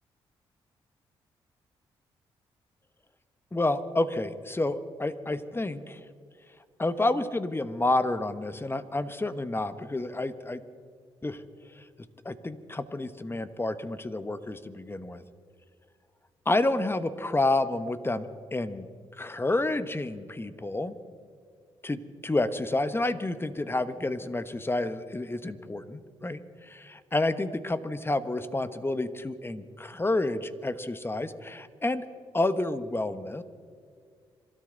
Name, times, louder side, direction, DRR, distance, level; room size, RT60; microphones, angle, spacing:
voice 1, 3.5-6.0 6.8-10.6 11.2-11.4 11.7-11.8 12.2-15.2 16.4-18.3 18.5-18.8 19.2-20.9 21.8-32.0 32.3-33.4, left 2 dB, 20° left, 12 dB, 1.3 m, -29 dB
26.0 x 13.0 x 4.0 m, 2.1 s
supercardioid pair, 50°, 11 cm